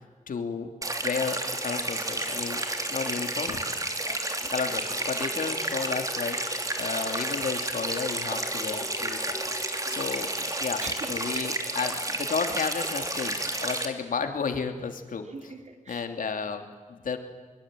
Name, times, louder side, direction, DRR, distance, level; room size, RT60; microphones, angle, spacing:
voice 1, 0.3-0.7 1.0-2.6 2.9-3.6 4.5-9.4 9.9-10.3 10.6-10.8 11.1-15.3 15.9-17.2, left 5 dB, 90° left, 6 dB, 3.0 m, -32 dB
sound 1, 0.8-13.9, right 2 dB, 25° right, 3.0 m, -31 dB
sound 2, 1.6-11.3, left 2 dB, 15° left, 4.4 m, -48 dB
voice 2, 4.0-4.5 9.8-11.4 15.2-16.1, right 4 dB, 60° right, 5 dB, 3.4 m, -44 dB
24.0 x 24.0 x 9.3 m, 1.4 s
wide cardioid pair, 115°, 14 cm